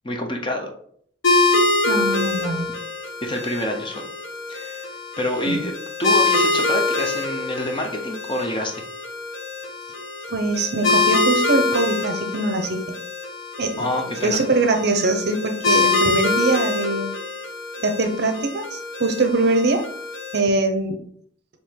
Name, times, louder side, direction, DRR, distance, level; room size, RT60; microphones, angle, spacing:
voice 1, 0.0-0.7 3.2-4.1 4.5-4.9 5.2-5.7 6.0-8.8 13.8-14.4, left 1 dB, 25° left, 3 dB, 0.6 m, -27 dB
sound 1, 1.2-20.4, left 3 dB, 75° left, 0.9 m, -24 dB
voice 2, 1.8-2.7 5.5-5.6 10.3-12.9 13.6-13.8 14.2-17.1 17.8-19.8 20.3-21.0, right 2 dB, 55° right, 6 dB, 0.6 m, -22 dB
4.5 x 2.8 x 3.6 m, 0.62 s
head